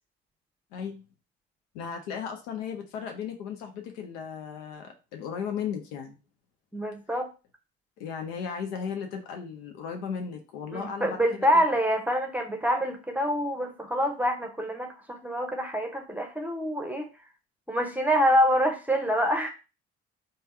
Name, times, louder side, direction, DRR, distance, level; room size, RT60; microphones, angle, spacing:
voice 1, 0.7-1.0 1.7-6.2 8.0-11.6, left 7 dB, 75° left, 4 dB, 0.8 m, -36 dB
voice 2, 6.7-7.3 10.7-17.1 17.7-19.5, equal, 5° right, 3 dB, 0.8 m, -26 dB
3.3 x 2.2 x 4.3 m, 0.31 s
hypercardioid pair, 50°, 31 cm